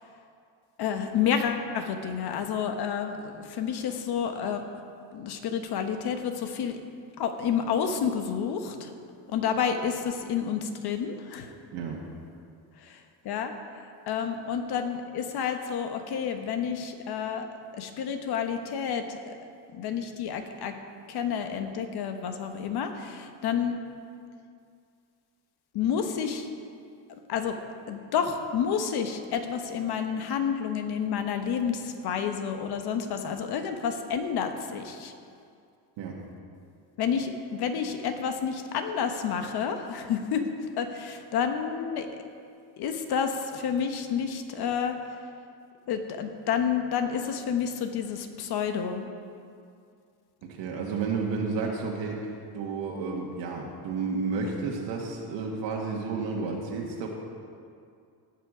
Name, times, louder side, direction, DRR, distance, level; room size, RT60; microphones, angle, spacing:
voice 1, 0.8-4.6 5.1-6.8 7.2-8.9 9.3-11.5 12.8-13.5 14.1-17.5 17.8-19.3 19.7-20.7 21.1-23.8 25.7-26.5 27.3-27.6 27.9-35.1 37.0-40.4 40.8-42.1 42.8-45.0 45.9-49.1, left 7 dB, 55° left, 6 dB, 1.1 m, -29 dB
voice 2, 50.5-52.3 52.5-57.1, right 4 dB, 75° right, -2 dB, 1.6 m, -31 dB
17.5 x 6.0 x 4.9 m, 2.3 s
cardioid pair, 130°, 45 cm